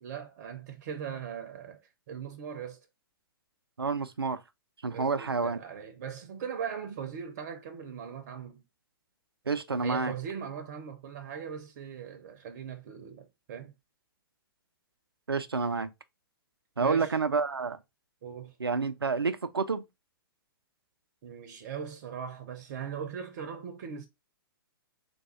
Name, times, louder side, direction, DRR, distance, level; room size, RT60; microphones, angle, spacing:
voice 1, 0.0-2.8 4.9-8.6 9.8-13.7 16.8-17.2 18.2-18.5 21.2-24.1, right 7 dB, 45° right, 0.6 m, -39 dB
voice 2, 3.8-4.4 4.8-5.6 9.5-10.1 15.3-15.9 16.8-17.8 18.6-19.8, right 4 dB, 85° right, 0.4 m, -29 dB
3.4 x 2.2 x 4.3 m
figure-of-eight pair, 115°, 12 cm